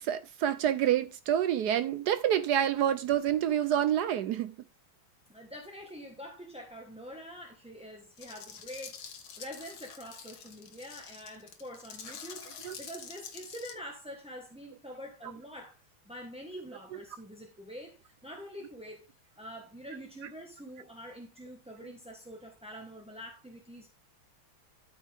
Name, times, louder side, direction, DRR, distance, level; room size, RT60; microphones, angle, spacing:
voice 1, 0.0-4.5 12.6-12.8, right 10 dB, 75° right, 1.0 m, -27 dB
voice 2, 5.3-9.0 9.4-15.8 16.0-19.1 19.3-23.9, equal, 5° right, 0.9 m, -45 dB
sound 1, 8.2-13.7, left 7 dB, 85° left, 2.0 m, -47 dB
12.5 x 5.5 x 3.4 m
omnidirectional pair, 2.2 m